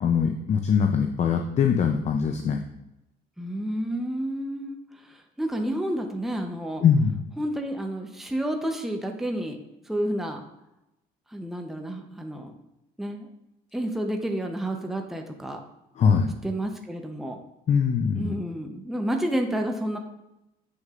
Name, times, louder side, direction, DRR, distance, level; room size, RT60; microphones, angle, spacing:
voice 1, 0.0-2.6 6.8-7.1 16.0-16.3 17.7-18.3, left 6 dB, 40° left, 5 dB, 0.5 m, -22 dB
voice 2, 3.4-4.8 5.0-6.8 7.4-9.6 9.9-10.4 11.3-12.5 13.0-13.3 13.7-15.6 16.4-17.4 18.1-20.0, right 1 dB, ahead, 3 dB, 0.8 m, -30 dB
7.3 x 6.4 x 2.5 m, 0.90 s
cardioid pair, 110°, 17 cm